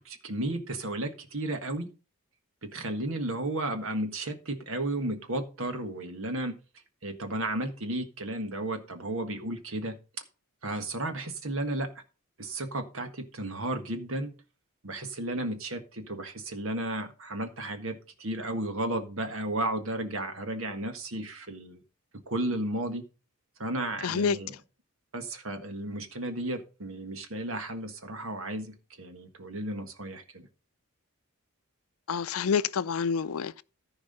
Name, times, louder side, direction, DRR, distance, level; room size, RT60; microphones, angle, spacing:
voice 1, 0.0-1.9 2.6-6.6 7.0-9.9 10.6-11.9 12.4-14.3 14.8-21.8 22.3-23.1 23.6-24.5 25.1-30.5, right 1 dB, 65° right, 1.7 m, -33 dB
voice 2, 24.0-24.4 32.1-33.6, left 6 dB, 75° left, 0.5 m, -27 dB
14.5 x 4.9 x 5.4 m
head